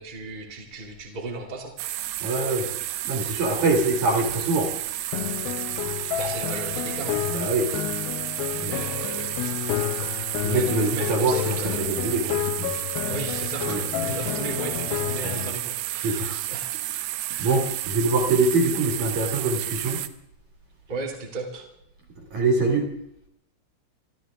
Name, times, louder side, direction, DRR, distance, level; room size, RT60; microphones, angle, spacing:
voice 1, 0.0-1.7 3.6-3.7 6.2-7.2 8.6-9.5 10.5-10.7 10.9-11.7 13.1-16.7 17.3-17.6 20.9-21.6, right 3 dB, 25° right, 0 dB, 1.1 m, -35 dB
sound 1, 1.8-20.1, right 14 dB, 80° right, 2.9 m, -31 dB
voice 2, 2.2-2.7 3.1-4.7 6.0-6.1 7.3-7.7 8.6-8.8 10.4-12.7 13.6-13.8 14.1-14.2 16.0-16.4 17.4-20.0 22.3-22.9, right 3 dB, 50° right, 2 dB, 2.9 m, -24 dB
sound 2, 5.1-15.6, left 15 dB, 80° left, 2.5 m, -30 dB
25.5 x 13.5 x 3.6 m, 0.75 s
omnidirectional pair, 5.5 m